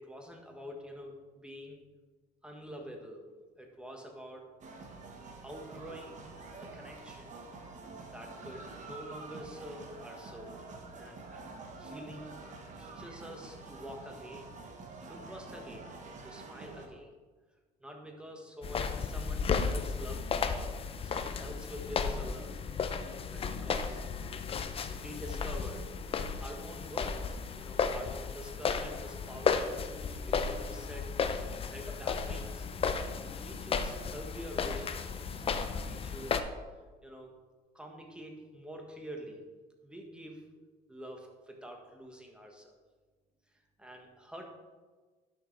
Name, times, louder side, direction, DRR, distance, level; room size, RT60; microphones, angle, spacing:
voice 1, 0.0-1.8 2.4-3.2 3.6-4.5 4.8-4.9 5.4-6.2 6.6-7.3 8.1-10.6 11.0-11.2 11.8-12.4 12.8-14.5 15.1-15.9 16.2-17.1 17.8-20.8 21.0-22.5 23.3-24.0 25.0-29.9 30.1-31.1 31.7-32.6 33.4-35.5 35.9-36.4 37.0-37.3 37.7-39.4 39.8-40.4 40.9-42.7 43.8-44.4, equal, 5° right, 2 dB, 1.3 m, -46 dB
sound 1, 4.6-16.9, right 3 dB, 45° right, 1.2 m, -47 dB
sound 2, 18.6-36.4, left 5 dB, 35° left, 0.5 m, -34 dB
11.0 x 6.4 x 3.3 m, 1.4 s
cardioid pair, 110°, 17 cm